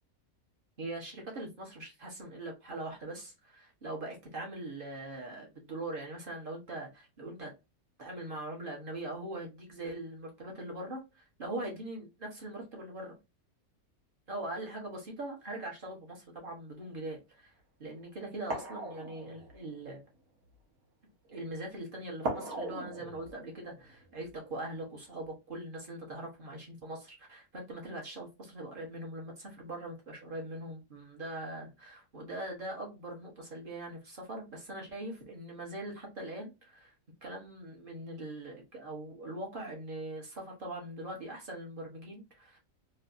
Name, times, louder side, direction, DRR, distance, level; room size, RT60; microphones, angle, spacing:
voice 1, 0.8-7.5 8.0-13.1 14.3-17.5 17.8-20.0 21.3-36.9 37.2-42.6, right 1 dB, 40° right, 1.2 m, -41 dB
sound 1, 16.9-17.1 17.9-18.0 18.5-20.2 22.2-24.8 25.1-25.2, right 2 dB, 80° right, 1.5 m, -40 dB
3.2 x 2.8 x 2.5 m
omnidirectional pair, 1.5 m